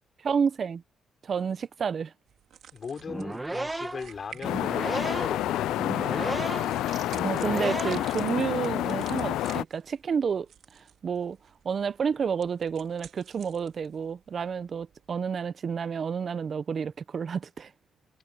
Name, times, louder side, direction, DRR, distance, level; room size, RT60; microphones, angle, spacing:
voice 1, 0.2-0.8 1.2-2.1 7.2-11.4 11.6-17.7, right 6 dB, 45° right, 0.9 m, -30 dB
sound 1, 2.3-15.1, right 9 dB, 70° right, 3.9 m, -52 dB
voice 2, 2.7-6.4, left 6 dB, 45° left, 4.5 m, -39 dB
sound 2, 3.0-8.3, right 2 dB, 15° right, 1.6 m, -34 dB
sound 3, 4.4-9.6, left 14 dB, 85° left, 0.3 m, -29 dB
cardioid pair, 90°, 0 cm